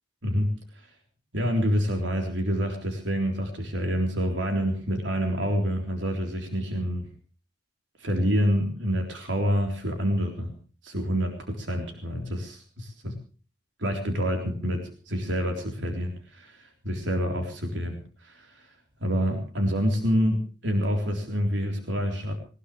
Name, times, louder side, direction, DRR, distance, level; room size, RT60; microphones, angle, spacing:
voice 1, 0.2-0.9 1.3-7.1 8.0-10.5 10.8-13.2 13.8-18.7 19.0-22.3, equal, 85° right, 3 dB, 3.8 m, -27 dB
21.0 x 20.0 x 3.3 m, 0.38 s
head